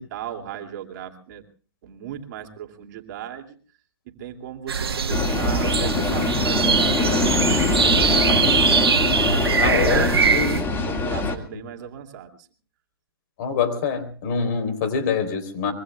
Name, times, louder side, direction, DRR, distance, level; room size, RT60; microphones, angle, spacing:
voice 1, 0.0-1.4 1.8-3.6 4.1-8.8 9.3-12.5, right 10 dB, 50° right, 3 dB, 2.6 m, -37 dB
sound 1, 4.7-10.6, right 6 dB, 90° right, 1.5 m, -22 dB
sound 2, 5.1-11.3, left 3 dB, 15° left, 2.1 m, -23 dB
voice 2, 9.6-10.6 13.4-15.7, left 6 dB, 50° left, 8 dB, 3.8 m, -25 dB
25.0 x 23.5 x 2.4 m, 0.39 s
hypercardioid pair, 135°, 12 cm